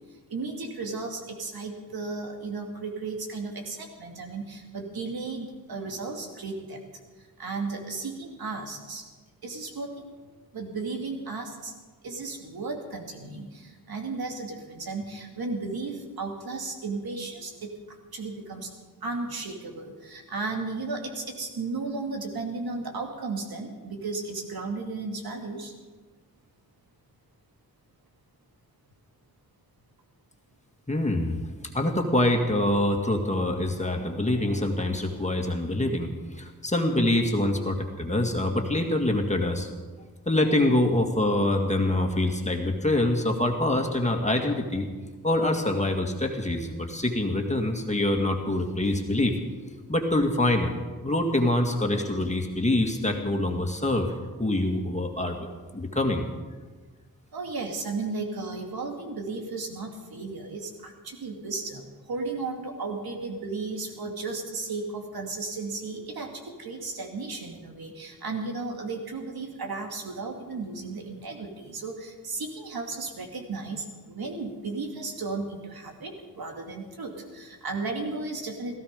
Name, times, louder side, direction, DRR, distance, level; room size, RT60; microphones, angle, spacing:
voice 1, 0.3-6.8 7.4-9.0 9.4-10.0 10.5-11.7 12.0-17.7 18.1-18.7 19.0-25.7 57.3-78.8, right 3 dB, 80° right, 2 dB, 2.5 m, -34 dB
voice 2, 30.9-31.4 31.7-39.7 40.3-44.9 45.2-49.4 49.9-50.7 51.0-54.1 54.4-55.5 55.7-56.3, left 1 dB, 20° left, 3 dB, 2.1 m, -25 dB
17.0 x 14.5 x 5.3 m, 1.4 s
wide cardioid pair, 85°, 36 cm